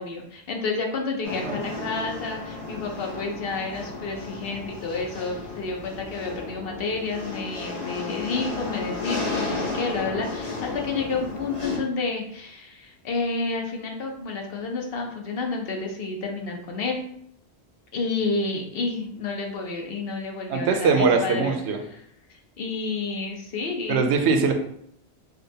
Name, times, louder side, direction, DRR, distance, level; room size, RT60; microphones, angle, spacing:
voice 1, 0.0-17.0 17.9-21.5 21.9-22.0 22.3-24.1, left 3 dB, 65° left, 2 dB, 0.9 m, -30 dB
sound 1, 1.2-11.8, left 3 dB, 40° left, 1.5 m, -33 dB
voice 2, 1.4-1.9 20.5-21.8 23.9-24.5, right 5 dB, 85° right, 5 dB, 0.9 m, -22 dB
5.0 x 2.2 x 2.7 m, 0.69 s
omnidirectional pair, 1.1 m